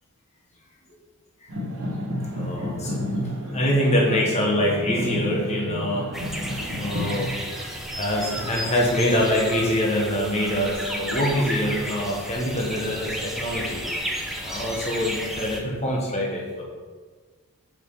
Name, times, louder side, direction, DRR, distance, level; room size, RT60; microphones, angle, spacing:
sound 1, 1.5-7.2, left 1 dB, 70° right, 1.9 m, -31 dB
voice 1, 2.3-6.1 6.8-7.3 7.9-13.8 14.4-16.6, equal, 30° left, -2 dB, 1.3 m, -24 dB
sound 2, 6.1-15.6, equal, ahead, 0.9 m, -33 dB
6.0 x 5.7 x 6.9 m, 1.5 s
head